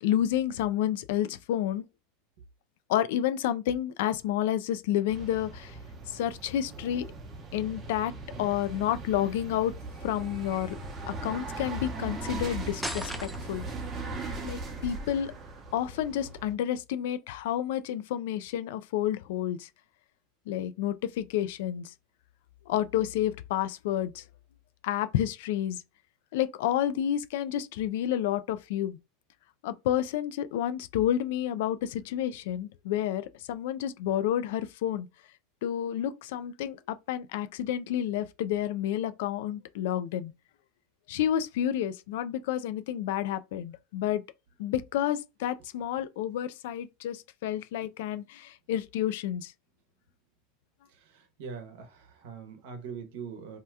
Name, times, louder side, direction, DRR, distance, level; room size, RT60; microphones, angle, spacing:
voice 1, 0.0-1.8 2.9-5.8 6.1-7.1 7.5-8.1 8.4-9.7 10.0-10.8 11.1-13.6 14.4-15.3 15.7-19.7 20.5-21.9 22.7-24.2 24.8-25.8 26.3-29.0 29.6-35.1 35.6-40.3 41.1-44.2 44.6-49.5, left 11 dB, 70° left, 0.3 m, -30 dB
sound 1, 5.1-16.5, right 3 dB, 30° right, 0.8 m, -39 dB
sound 2, 12.8-13.8, equal, 5° right, 0.5 m, -36 dB
voice 2, 51.1-53.6, right 6 dB, 70° right, 0.9 m, -42 dB
2.8 x 2.2 x 3.4 m
supercardioid pair, 110°, 0 cm